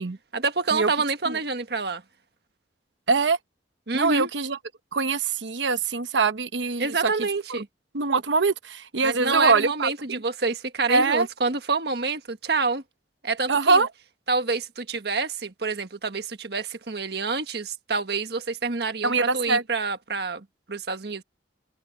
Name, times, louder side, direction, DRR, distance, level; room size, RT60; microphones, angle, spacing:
voice 1, 0.3-2.0 3.9-4.3 6.8-7.7 9.0-12.8 13.2-13.8 14.3-21.2, right 4 dB, 60° right, 1.6 m, -27 dB
voice 2, 3.9-4.6 4.9-6.9 7.5-7.6 7.9-10.2 10.9-11.3 13.5-13.9 19.0-19.6, right 4 dB, 85° right, 1.0 m, -23 dB
head